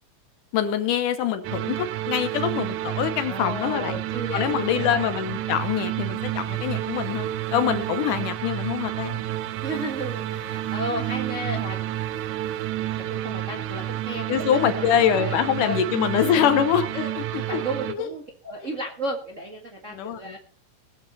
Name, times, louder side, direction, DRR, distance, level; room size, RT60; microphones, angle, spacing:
voice 1, 0.5-4.0 4.3-9.2 14.3-17.6 18.0-18.1 19.9-20.4, left 9 dB, 75° left, 10 dB, 2.5 m, -24 dB
sound 1, 1.4-17.9, right 13 dB, 75° right, 2.0 m, -30 dB
voice 2, 3.2-5.0 9.6-11.8 12.9-14.9 15.2-15.8 16.2-16.7 16.9-17.1 17.3-20.4, right 1 dB, 35° right, 1 dB, 1.3 m, -33 dB
20.0 x 7.7 x 4.2 m, 0.42 s
omnidirectional pair, 3.9 m